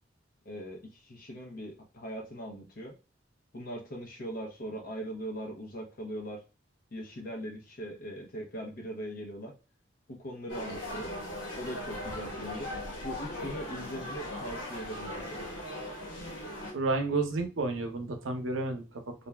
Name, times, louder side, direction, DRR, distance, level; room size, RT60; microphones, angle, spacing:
voice 1, 0.4-2.9 3.5-6.4 6.9-9.5 10.1-11.1 11.5-12.7 13.0-15.5, equal, 50° left, 0 dB, 0.8 m, -40 dB
sound 1, 10.5-16.7, left 1 dB, 85° left, 1.1 m, -39 dB
voice 2, 16.7-19.1, right 3 dB, 85° right, 4 dB, 0.6 m, -31 dB
2.5 x 2.2 x 3.3 m, 0.31 s
head